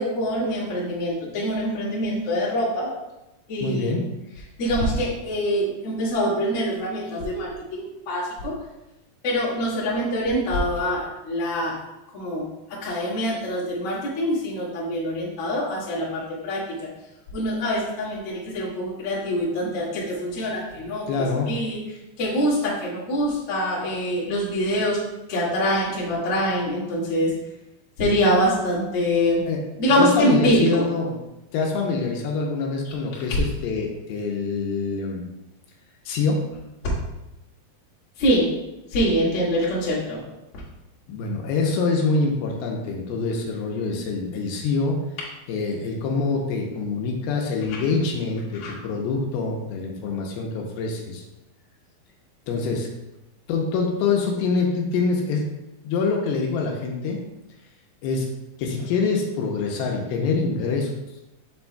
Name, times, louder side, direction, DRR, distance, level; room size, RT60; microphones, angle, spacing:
voice 1, 0.0-2.9 3.5-3.9 4.6-8.5 9.2-11.7 12.1-12.4 12.8-16.6 17.3-21.1 21.5-21.8 22.2-25.0 25.3-27.3 28.0-29.4 29.8-30.8 33.3-33.4 38.2-38.5 38.9-40.2 47.7-47.8 48.6-48.7, equal, 45° left, -7 dB, 2.4 m, -24 dB
voice 2, 3.6-4.1 21.1-21.5 29.5-29.6 30.0-31.2 31.5-35.3 36.1-36.5 41.1-45.0 45.5-51.2 52.5-52.9 53.5-55.5 55.8-57.2 58.0-58.3 58.6-60.9, left 4 dB, 85° left, 0 dB, 2.6 m, -25 dB
7.0 x 6.9 x 2.2 m, 0.96 s
omnidirectional pair, 4.4 m